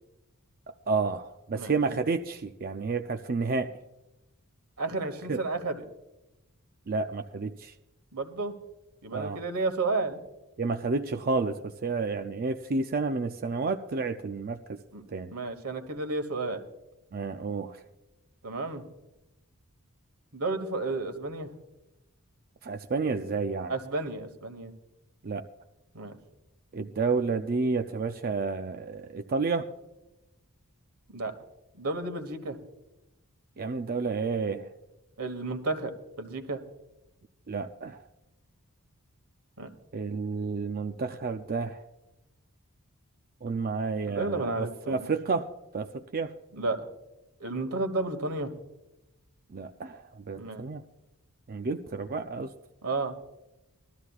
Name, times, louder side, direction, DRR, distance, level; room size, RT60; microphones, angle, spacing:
voice 1, 0.9-3.7 5.3-5.4 6.9-7.7 9.1-9.4 10.6-14.8 15.1-15.3 17.1-17.8 22.6-23.7 25.2-25.5 26.7-29.7 33.6-34.7 37.5-38.1 39.9-41.8 43.4-46.3 49.5-50.8 51.5-52.5, right 4 dB, 40° right, 6 dB, 0.5 m, -30 dB
voice 2, 4.8-5.8 8.1-8.5 9.0-10.2 14.9-15.0 15.3-16.6 18.4-18.8 20.3-21.5 23.7-24.7 25.9-26.2 31.1-31.4 31.8-32.6 35.2-36.6 39.6-39.7 44.1-45.1 46.5-46.9 47.4-48.5 50.4-50.6 52.8-53.1, right 3 dB, 90° right, 8 dB, 1.4 m, -32 dB
20.0 x 13.0 x 2.4 m, 0.96 s
head